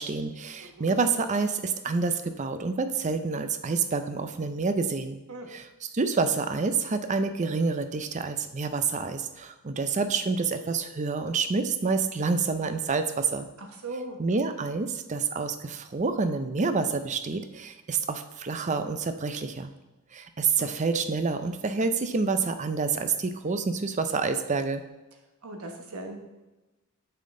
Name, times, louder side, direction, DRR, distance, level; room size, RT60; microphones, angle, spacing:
voice 1, 0.0-5.2 5.5-13.5 14.2-19.7 20.1-24.8, right 4 dB, 35° right, 9 dB, 0.5 m, -28 dB
voice 2, 0.6-1.0 5.3-5.5 13.6-14.2 20.6-20.7 25.4-26.2, right 2 dB, 85° right, 3 dB, 1.3 m, -39 dB
8.7 x 5.8 x 3.7 m, 1.1 s
head